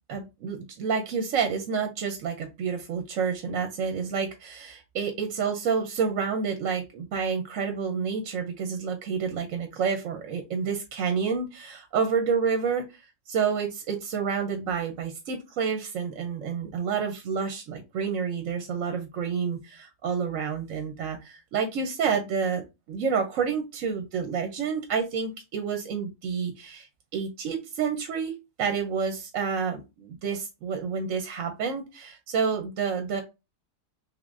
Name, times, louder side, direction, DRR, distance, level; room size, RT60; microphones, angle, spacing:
voice 1, 0.1-12.9 13.3-22.6 22.9-26.9 27.1-33.2, right 6 dB, 65° right, 6 dB, 0.9 m, -29 dB
3.6 x 3.1 x 2.5 m, 0.25 s
omnidirectional pair, 1.6 m